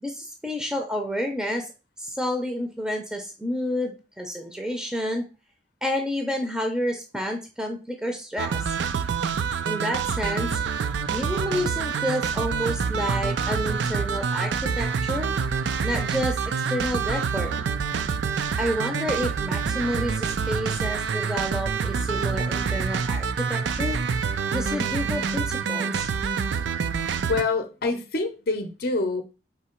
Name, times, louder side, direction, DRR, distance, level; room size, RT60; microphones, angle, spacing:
voice 1, 0.0-1.7 2.0-5.3 5.8-8.7 9.6-10.6 11.1-15.3 15.8-16.4 16.7-17.6 18.6-24.0 24.5-26.1, equal, 5° right, 3 dB, 0.5 m, -29 dB
sound 1, 8.4-27.4, right 6 dB, 75° right, 0.4 m, -27 dB
voice 2, 27.3-29.2, left 3 dB, 55° left, 6 dB, 0.6 m, -26 dB
3.8 x 2.8 x 4.4 m, 0.31 s
head